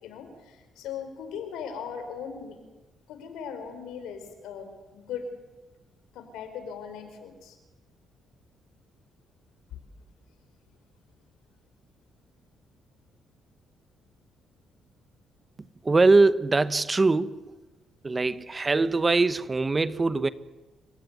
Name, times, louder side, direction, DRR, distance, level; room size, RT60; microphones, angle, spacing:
voice 1, 0.0-2.6 3.1-5.3 6.1-7.6, left 7 dB, 90° left, 4.8 m, -39 dB
voice 2, 15.8-17.5 18.0-20.3, right 3 dB, 25° right, 1.1 m, -22 dB
29.0 x 16.0 x 9.5 m
cardioid pair, 90°, 0 cm